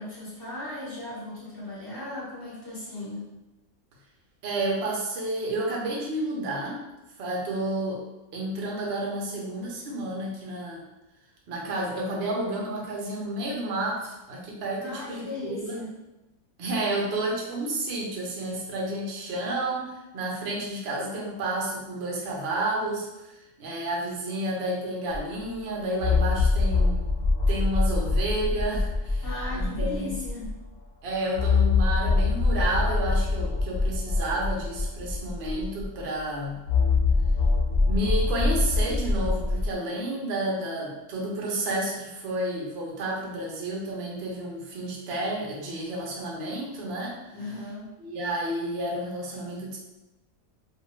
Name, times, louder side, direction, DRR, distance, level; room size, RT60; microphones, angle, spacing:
voice 1, 0.0-3.3 14.8-15.9 29.2-30.5 47.3-47.9, left 2 dB, 15° left, -8 dB, 0.9 m, -37 dB
voice 2, 4.4-6.8 7.2-8.0 8.3-10.8 11.5-15.8 16.6-27.0 27.5-29.2 29.5-30.1 31.0-36.6 37.8-47.2 48.0-49.8, right 1 dB, 55° right, -2 dB, 0.8 m, -31 dB
sound 1, 25.1-25.2 26.0-30.5 31.3-36.0 36.7-39.7, left 3 dB, 40° left, 0.6 m, -24 dB
2.6 x 2.4 x 3.0 m, 0.99 s
omnidirectional pair, 1.5 m